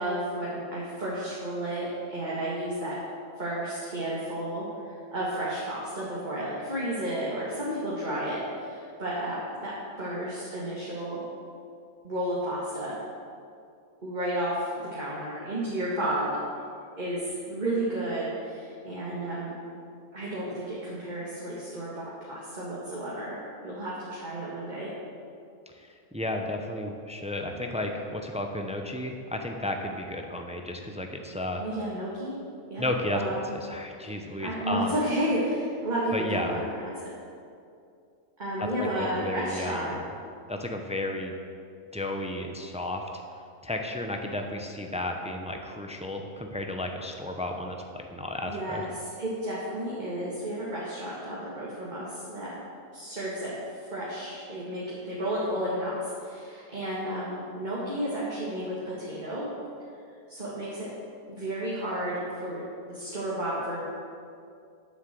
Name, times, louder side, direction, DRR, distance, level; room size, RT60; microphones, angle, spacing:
voice 1, 0.0-3.0 3.4-11.2 12.0-13.0 14.0-16.4 17.0-19.6 20.1-24.9 31.6-32.4 32.7-33.5 34.0-37.1 38.4-40.0 48.4-52.6 52.9-53.5 53.9-59.5 60.3-60.9 61.3-62.6 62.9-63.8, right 1 dB, 35° right, -7 dB, 2.1 m, -32 dB
voice 2, 25.8-31.6 32.8-33.2 33.5-35.0 36.1-36.6 38.8-39.9 40.5-41.4 41.9-43.0 43.6-48.8, left 1 dB, 5° right, 3 dB, 0.6 m, -33 dB
9.7 x 7.7 x 7.6 m, 2.4 s
omnidirectional pair, 1.4 m